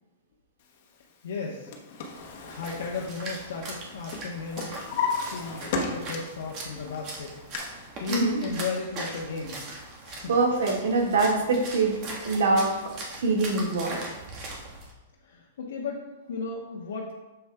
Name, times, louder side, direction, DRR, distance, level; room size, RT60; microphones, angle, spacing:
voice 1, 1.2-1.7 2.4-4.8 5.3-5.6 5.9-7.4 8.0-9.6 10.0-10.3 15.2-17.1, left 4 dB, 80° left, -2 dB, 0.9 m, -35 dB
Drawer open or close, 1.4-3.8 4.1-6.5 6.9-7.6, left 5 dB, 55° left, 1.0 m, -33 dB
Splash splatter, 2.2-14.9, right 2 dB, 35° right, 1.4 m, -40 dB
voice 2, 8.1-8.4 10.3-12.8 13.1-14.0, right 3 dB, 80° right, 0 dB, 1.7 m, -24 dB
6.9 x 6.9 x 2.2 m, 1.1 s
hypercardioid pair, 140°, 0 cm